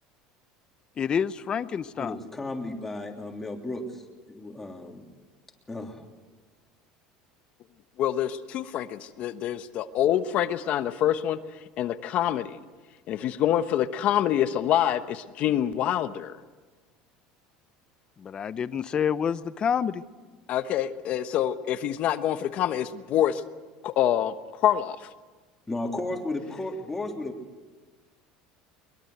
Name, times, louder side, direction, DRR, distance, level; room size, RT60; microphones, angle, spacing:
voice 1, 1.0-2.2 18.2-20.0, left 7 dB, 30° left, 14 dB, 0.8 m, -28 dB
voice 2, 2.0-4.0 4.3-5.1 5.7-6.0 25.7-27.4, left 2 dB, 10° left, 1 dB, 3.3 m, -34 dB
voice 3, 8.0-12.6 13.1-16.4 20.5-23.4 23.8-24.3 24.6-25.1, left 11 dB, 50° left, 10 dB, 1.1 m, -26 dB
22.5 x 22.5 x 8.1 m, 1.3 s
cardioid pair, 135°, 3 cm